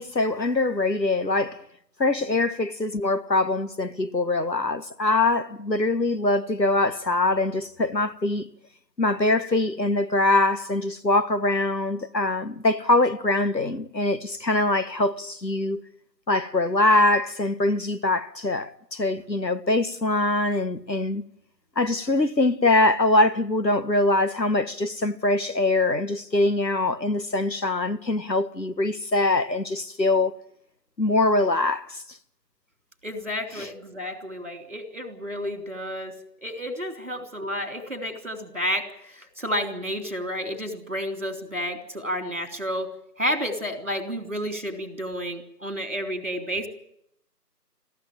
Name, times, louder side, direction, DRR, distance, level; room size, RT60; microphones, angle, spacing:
voice 1, 0.0-1.6 2.0-8.5 9.0-15.8 16.3-21.3 21.7-30.3 31.0-32.0 33.6-33.7, left 2 dB, 90° left, 1.7 m, -23 dB
voice 2, 33.0-36.1 36.4-42.9 43.2-46.7, equal, 45° right, 3.6 m, -31 dB
21.5 x 14.5 x 8.9 m
figure-of-eight pair, 180°, 49 cm